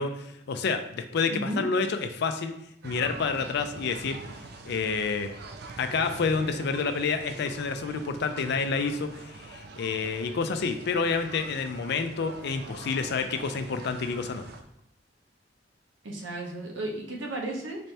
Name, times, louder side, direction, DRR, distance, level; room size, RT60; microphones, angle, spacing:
voice 1, 0.0-2.5 2.8-4.2 4.6-5.3 5.8-14.5, left 4 dB, 65° left, 8 dB, 0.4 m, -29 dB
voice 2, 1.3-1.6 16.0-17.9, right 1 dB, 80° right, -1 dB, 0.9 m, -34 dB
sound 1, 2.8-14.6, right 3 dB, 60° right, 0.4 m, -44 dB
4.2 x 2.7 x 3.3 m, 0.79 s
head